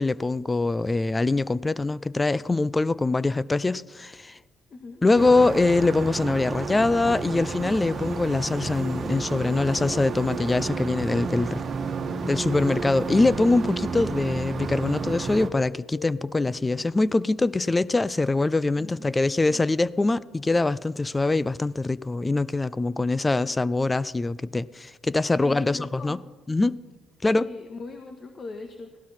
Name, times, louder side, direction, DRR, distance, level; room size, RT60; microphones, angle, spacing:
voice 1, 0.0-4.4 5.0-11.6 12.2-26.2 26.5-26.8 27.2-27.5, left 3 dB, 20° left, 0.5 m, -23 dB
voice 2, 4.7-5.0 18.8-19.7 25.4-26.2 27.2-29.0, left 3 dB, 45° left, 1.7 m, -40 dB
sound 1, 5.2-15.5, right 5 dB, 50° right, 1.4 m, -31 dB
sound 2, 7.2-18.5, left 9 dB, 65° left, 0.7 m, -47 dB
18.0 x 16.5 x 4.4 m
supercardioid pair, 60°, 0 cm